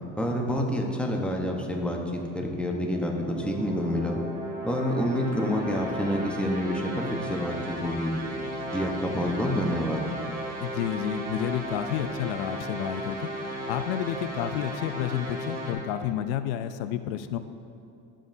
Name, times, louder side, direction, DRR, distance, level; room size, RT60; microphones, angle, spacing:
voice 1, 0.2-4.2 4.6-8.1 8.7-10.1, equal, 5° left, 0 dB, 0.9 m, -28 dB
sound 1, 2.9-15.7, right 1 dB, 30° right, 2.1 m, -35 dB
voice 2, 10.6-13.3 13.7-17.4, left 10 dB, 90° left, 10 dB, 0.5 m, -30 dB
12.5 x 7.4 x 2.7 m, 2.7 s
cardioid pair, 120°, 32 cm